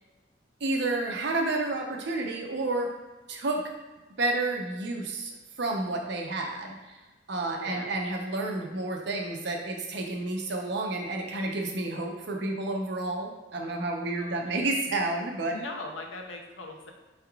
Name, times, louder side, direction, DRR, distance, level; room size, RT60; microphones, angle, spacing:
voice 1, 0.6-2.9 3.3-3.6 4.2-5.3 5.6-7.0 7.3-15.6, right 2 dB, 65° right, 1 dB, 0.6 m, -30 dB
voice 2, 7.5-7.9 14.2-14.4 15.5-16.9, left 2 dB, 85° left, 2 dB, 0.6 m, -40 dB
4.6 x 3.5 x 2.3 m, 1.2 s
head